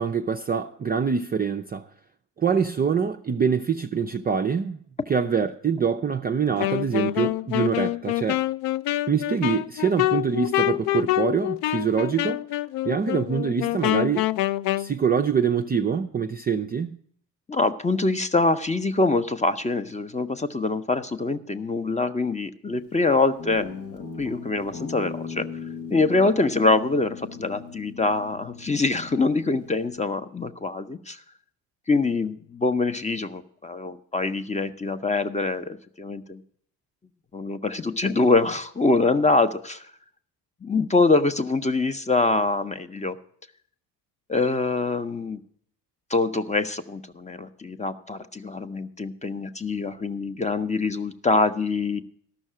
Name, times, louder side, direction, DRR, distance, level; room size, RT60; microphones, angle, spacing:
voice 1, 0.0-1.9 2.4-4.8 5.1-8.4 9.1-12.4 12.8-14.3 14.8-17.0, right 6 dB, 20° right, 0.4 m, -25 dB
Wind instrument woodwind instrument, 6.6-14.9, left 16 dB, 60° left, 0.5 m, -26 dB
voice 2, 17.5-25.5 25.9-31.2 31.9-36.4 37.3-39.8 40.6-43.2 44.3-45.4 46.1-52.0, left 3 dB, 15° left, 0.7 m, -24 dB
Guitar, 23.4-29.9, left 5 dB, 85° left, 1.1 m, -39 dB
13.0 x 6.3 x 7.5 m
hypercardioid pair, 50°, 50 cm